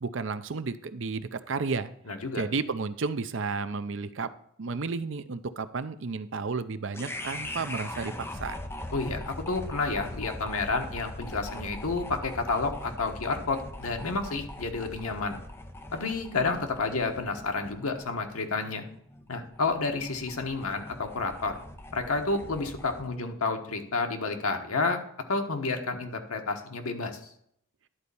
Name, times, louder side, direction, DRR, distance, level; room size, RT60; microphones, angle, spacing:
voice 1, 0.0-1.9 2.3-4.3 4.6-8.1 8.4-8.6, right 4 dB, 60° right, 12 dB, 0.6 m, -32 dB
voice 2, 2.1-2.4 8.9-15.4 15.9-18.8 19.3-21.6 21.9-25.0 25.3-27.2, left 3 dB, 85° left, 5 dB, 1.4 m, -30 dB
sound 1, 6.9-23.1, left 1 dB, 10° left, 0.6 m, -41 dB
11.0 x 4.2 x 6.9 m, 0.69 s
head